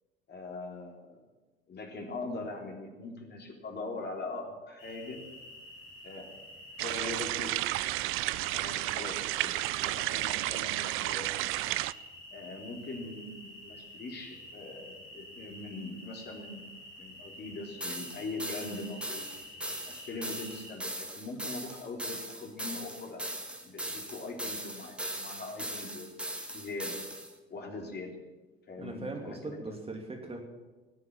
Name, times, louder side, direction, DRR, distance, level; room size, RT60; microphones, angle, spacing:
voice 1, 0.3-1.2 1.7-5.2 6.0-6.3 6.8-7.7 8.5-9.5 9.8-11.4 12.3-16.6 17.0-19.3 19.9-23.2 23.6-27.0 27.5-28.1 28.7-29.6, left 3 dB, 35° left, 1 dB, 3.5 m, -41 dB
sound 1, 4.8-20.8, left 1 dB, 70° left, 4.1 m, -49 dB
sound 2, 6.8-11.9, right 19 dB, 45° right, 0.5 m, -32 dB
sound 3, 17.8-27.3, right 1 dB, 5° right, 1.9 m, -39 dB
voice 2, 28.7-30.4, right 2 dB, 20° right, 1 dB, 2.7 m, -40 dB
18.5 x 7.8 x 8.7 m, 1.2 s
figure-of-eight pair, 65°, 30 cm